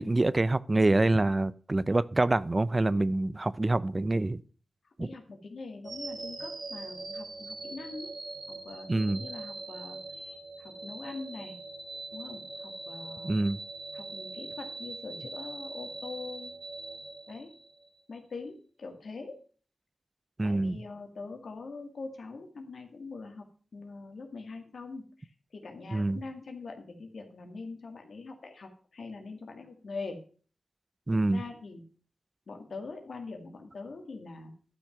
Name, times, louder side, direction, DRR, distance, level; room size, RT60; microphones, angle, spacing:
voice 1, 0.0-4.4 5.0-5.1 8.9-9.2 13.2-13.6 20.4-20.8 25.9-26.2 31.1-31.4, right 2 dB, 35° right, 0.6 m, -26 dB
voice 2, 5.0-8.1 8.5-11.6 12.1-13.4 13.9-16.5 17.3-17.5 18.1-19.3 20.4-23.5 23.7-25.3 25.5-30.2 31.1-31.8 32.5-34.5, left 3 dB, 80° left, 2.1 m, -43 dB
sound 1, 5.8-18.0, right 3 dB, 70° right, 3.2 m, -42 dB
12.0 x 6.1 x 5.9 m
cardioid pair, 45°, 0 cm